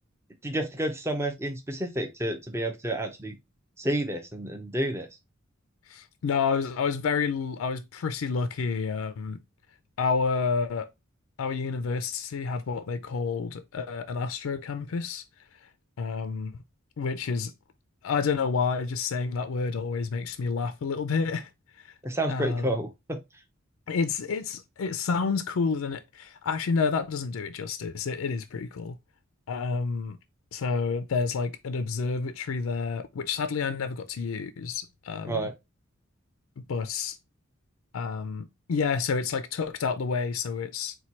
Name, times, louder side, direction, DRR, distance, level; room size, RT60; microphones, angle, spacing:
voice 1, 0.4-3.4 3.8-5.1 22.0-23.2 35.3-35.5, right 1 dB, 15° right, 0.6 m, -30 dB
voice 2, 5.9-9.4 10.0-10.9 11.4-15.2 16.0-16.6 17.0-17.5 18.0-21.5 21.8-21.9 22.3-22.8 23.9-29.0 29.5-30.2 30.5-35.5 36.6-37.2 37.9-41.0, left 5 dB, 80° left, 0.4 m, -29 dB
4.4 x 2.2 x 4.1 m
head